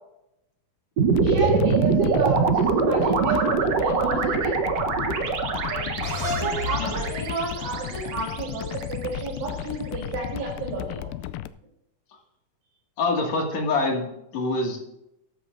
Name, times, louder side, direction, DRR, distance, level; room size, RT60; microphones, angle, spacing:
sound 1, 1.0-9.3, right 5 dB, 60° right, 2.0 m, -24 dB
sound 2, 1.1-11.5, left 13 dB, 90° left, 2.3 m, -34 dB
voice 1, 1.2-4.5 5.6-5.9 6.3-11.1, right 3 dB, 85° right, -5 dB, 5.3 m, -30 dB
sound 3, 6.0-9.3, left 1 dB, 20° right, 3.4 m, -34 dB
voice 2, 13.0-14.9, left 3 dB, 55° left, 0 dB, 3.4 m, -25 dB
14.0 x 13.5 x 2.7 m, 0.82 s
omnidirectional pair, 3.9 m